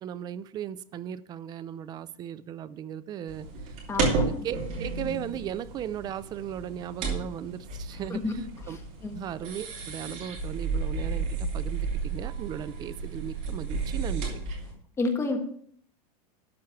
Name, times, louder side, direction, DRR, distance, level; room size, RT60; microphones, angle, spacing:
voice 1, 0.0-8.8 9.1-14.4, right 10 dB, 20° right, 0.4 m, -37 dB
sound 1, 3.3-14.7, right 4 dB, 40° right, 2.9 m, -32 dB
voice 2, 3.9-4.2 8.1-8.3 8.7-9.2 15.0-15.4, left 3 dB, 15° left, 1.4 m, -30 dB
12.5 x 4.6 x 7.2 m
supercardioid pair, 160°, 19 cm